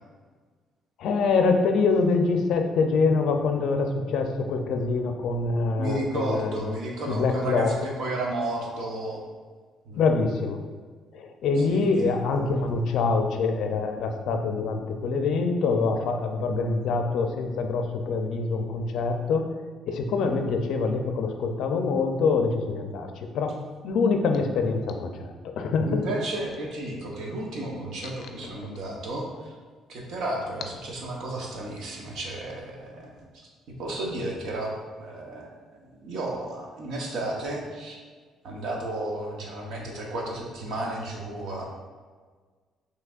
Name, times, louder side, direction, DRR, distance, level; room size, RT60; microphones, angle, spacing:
voice 1, 1.0-6.7 7.1-7.7 10.0-10.6 11.1-19.5 19.9-26.0, left 4 dB, 65° left, 5 dB, 0.4 m, -25 dB
voice 2, 5.8-9.2 9.8-10.0 11.7-12.1 25.8-29.5 29.9-33.5 33.8-35.5 35.8-38.0 38.4-41.6, right 1 dB, 60° right, -1 dB, 0.9 m, -33 dB
5.8 x 3.2 x 2.4 m, 1.5 s
cardioid pair, 170°, 0 cm